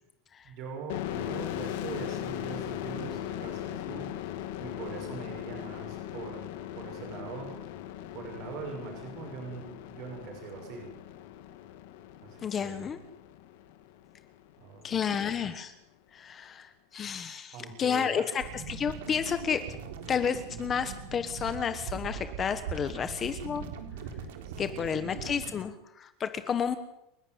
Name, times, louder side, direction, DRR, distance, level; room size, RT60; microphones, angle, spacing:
voice 1, 0.4-4.1 4.6-6.5 6.7-7.6 8.1-10.9 12.2-12.9 14.6-15.1 17.5-18.3 24.4-25.1, right 4 dB, 40° right, 1 dB, 6.7 m, -42 dB
sound 1, 0.9-14.3, left 12 dB, 65° left, 2.6 m, -39 dB
voice 2, 12.4-13.0 14.8-15.7 16.1-19.6 20.1-23.6 24.6-26.8, left 7 dB, 20° left, 10 dB, 1.2 m, -31 dB
sound 2, 18.4-25.5, right 6 dB, 85° right, 4.1 m, -40 dB
29.5 x 12.0 x 9.5 m, 0.84 s
supercardioid pair, 175°, 0 cm